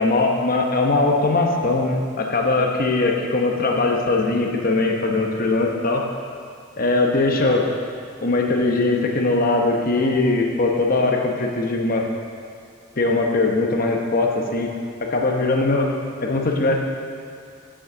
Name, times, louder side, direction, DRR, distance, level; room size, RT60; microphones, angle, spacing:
voice 1, 0.0-6.0 6.8-7.7 8.2-12.0 13.0-14.7 15.1-15.9 16.2-16.8, left 2 dB, 45° left, 1 dB, 0.9 m, -20 dB
6.4 x 6.2 x 6.6 m, 2.4 s
head